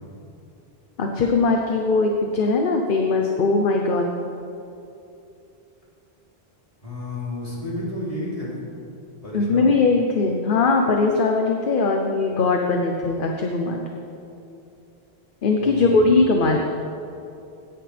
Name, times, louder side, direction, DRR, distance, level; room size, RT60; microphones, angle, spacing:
voice 1, 1.0-4.0 9.3-13.8 15.4-16.6, left 3 dB, 55° left, 2 dB, 1.0 m, -20 dB
voice 2, 6.8-8.6 9.2-9.7 15.6-16.2, left 1 dB, 35° left, -7 dB, 3.4 m, -31 dB
17.0 x 10.5 x 3.4 m, 2.8 s
omnidirectional pair, 1.1 m